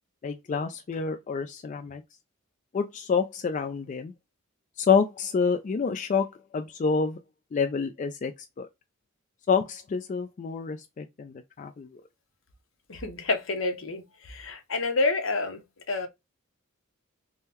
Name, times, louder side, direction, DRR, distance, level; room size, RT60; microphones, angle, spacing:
voice 1, 0.2-2.0 2.7-4.1 4.8-6.3 6.5-7.2 7.5-8.3 8.6-8.7 9.5-11.9, left 5 dB, 35° left, 0.3 m, -27 dB
voice 2, 12.9-15.6 15.9-16.1, left 3 dB, 70° left, 0.8 m, -28 dB
3.7 x 2.1 x 2.8 m
head